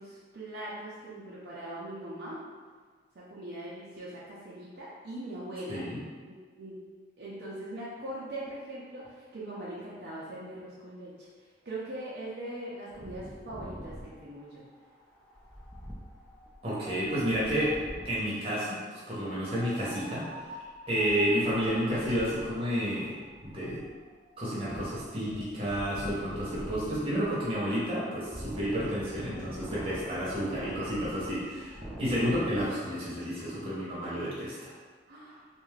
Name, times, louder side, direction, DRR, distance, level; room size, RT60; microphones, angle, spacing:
voice 1, 0.0-2.4 3.2-5.8 6.2-6.8 7.2-11.3 11.7-14.6 31.8-32.0 35.1-35.4, right 1 dB, 55° right, -8 dB, 0.5 m, -41 dB
voice 2, 5.7-6.0 16.6-17.7 18.1-20.2 20.9-23.2 23.4-23.8 24.4-34.7, equal, 30° right, -8 dB, 0.8 m, -31 dB
Wind, 12.9-18.3 19.4-32.7, equal, 5° left, 0.3 m, -44 dB
2.5 x 2.3 x 3.1 m, 1.5 s
head